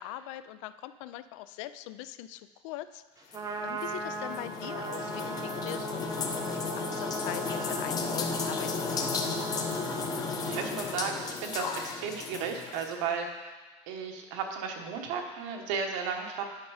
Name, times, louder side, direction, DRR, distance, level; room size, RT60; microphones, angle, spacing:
voice 1, 0.0-9.2, left 14 dB, 75° left, 13 dB, 0.4 m, -42 dB
Trumpet, 3.2-10.8, right 2 dB, 25° right, 0.8 m, -38 dB
sound 1, 3.3-12.9, left 4 dB, 25° left, 0.7 m, -34 dB
voice 2, 10.1-13.5 13.9-16.4, right 6 dB, 80° right, 3 dB, 1.3 m, -34 dB
9.8 x 5.4 x 4.9 m, 1.2 s
cardioid pair, 165°, 16 cm